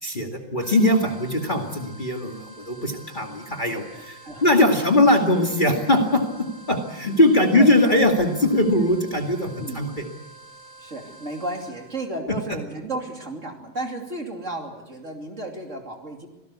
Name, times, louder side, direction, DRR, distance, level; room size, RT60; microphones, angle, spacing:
voice 1, 0.0-6.2 6.7-10.1, left 1 dB, 25° left, 2 dB, 2.3 m, -20 dB
sound 1, 0.6-12.0, right 2 dB, 50° left, 8.5 m, -47 dB
voice 2, 3.9-4.6 7.1-7.2 7.6-7.7 9.6-9.9 10.8-16.3, right 1 dB, 40° right, 3 dB, 3.1 m, -33 dB
25.5 x 18.0 x 8.3 m, 1.0 s
omnidirectional pair, 2.1 m